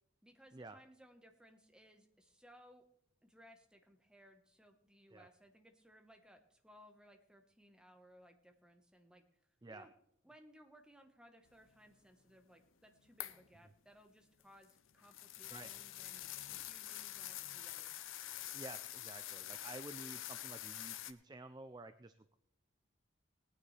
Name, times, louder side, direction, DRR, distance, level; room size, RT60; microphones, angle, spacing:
voice 1, 0.2-2.8 3.2-9.2 9.7-9.9 10.2-17.9, equal, 5° right, 5 dB, 1.1 m, -63 dB
sound 1, 13.2-13.5 14.4-21.1, left 13 dB, 75° left, 0.6 m, -46 dB
voice 2, 18.5-22.4, right 2 dB, 20° right, 11 dB, 0.4 m, -51 dB
19.5 x 9.5 x 3.3 m, 0.77 s
head